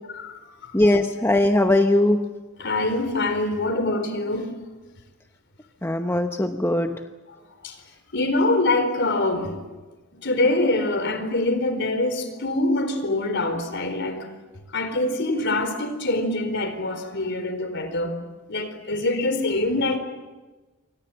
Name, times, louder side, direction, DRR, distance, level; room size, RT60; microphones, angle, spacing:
voice 1, 0.1-0.7 2.6-4.5 7.6-7.8 8.1-9.5 10.2-14.3 14.7-18.1 18.5-20.0, left 2 dB, 55° left, 4.2 m, -24 dB
voice 2, 0.7-2.2 5.8-7.0, left 1 dB, 10° left, 0.9 m, -20 dB
28.0 x 24.5 x 7.9 m
head